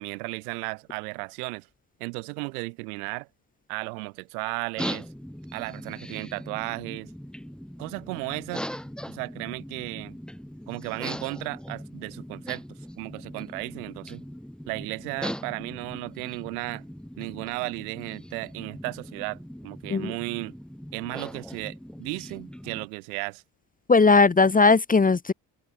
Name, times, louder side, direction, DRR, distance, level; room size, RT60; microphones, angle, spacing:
voice 1, 0.0-1.7 2.0-3.3 3.7-5.1 5.5-7.1 7.8-8.7 9.1-10.2 10.7-14.2 14.7-16.8 17.2-20.5 20.9-23.4, right 31 dB, 90° right, 5.6 m, -35 dB
sound 1, 4.8-22.9, equal, ahead, 5.3 m, -40 dB
voice 2, 23.9-25.3, left 4 dB, 20° left, 0.9 m, -18 dB
supercardioid pair, 70°, 44 cm